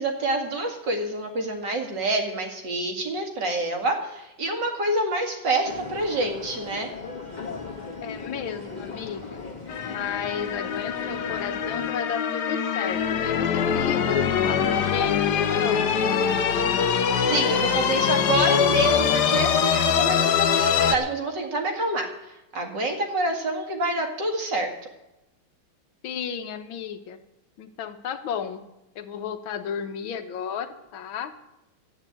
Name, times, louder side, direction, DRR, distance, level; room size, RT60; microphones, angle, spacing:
voice 1, 0.0-6.9 17.1-24.7, right 2 dB, 60° right, 4 dB, 2.7 m, -27 dB
sound 1, 5.6-11.9, left 4 dB, 25° left, 1.8 m, -38 dB
voice 2, 8.0-9.4 9.8-15.9 26.0-27.2 27.6-28.6 29.0-31.5, left 8 dB, 80° left, 9 dB, 1.8 m, -33 dB
sound 2, 9.7-20.9, left 7 dB, 60° left, 1.3 m, -23 dB
13.0 x 9.1 x 8.6 m, 0.92 s
omnidirectional pair, 2.2 m